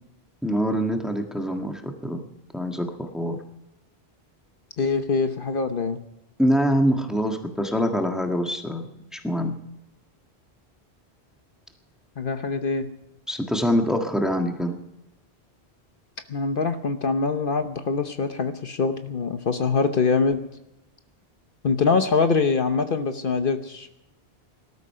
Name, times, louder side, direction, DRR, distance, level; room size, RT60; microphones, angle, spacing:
voice 1, 0.4-2.2 2.5-3.4 6.4-9.5 13.3-14.8, equal, ahead, 3 dB, 1.5 m, -24 dB
voice 2, 4.8-6.0 12.2-12.9 16.3-20.4 21.6-23.9, left 4 dB, 60° left, 8 dB, 1.1 m, -24 dB
19.0 x 12.5 x 5.6 m, 0.92 s
omnidirectional pair, 1.1 m